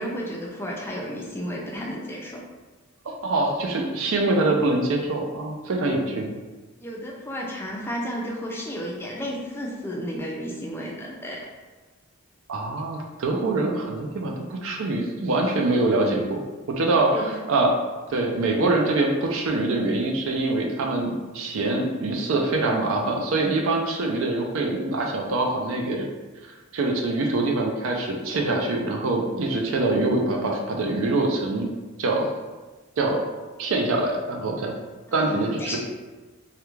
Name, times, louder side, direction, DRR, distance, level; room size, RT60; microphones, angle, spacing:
voice 1, 0.0-2.4 6.8-11.4 17.1-17.4 35.1-35.8, equal, 10° left, -2 dB, 0.4 m, -33 dB
voice 2, 3.1-6.3 12.5-16.4 16.7-17.8 18.1-26.1 26.4-31.7 32.0-32.3 33.0-33.2 33.6-34.7 35.1-35.8, right 2 dB, 75° right, 1 dB, 0.4 m, -24 dB
2.3 x 2.2 x 3.0 m, 1.2 s
head